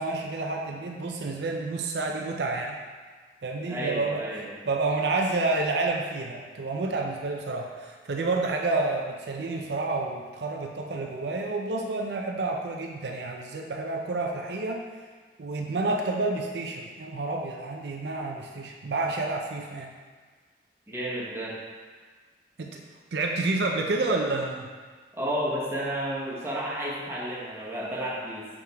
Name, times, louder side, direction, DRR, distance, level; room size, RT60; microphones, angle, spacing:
voice 1, 0.0-2.8 3.4-14.8 15.4-19.9 22.6-22.8 23.1-24.7, right 3 dB, 70° right, 1 dB, 0.5 m, -29 dB
voice 2, 3.7-4.5 20.9-21.6 25.1-28.5, right 1 dB, 15° right, -6 dB, 1.2 m, -31 dB
6.2 x 4.9 x 3.4 m, 1.5 s
head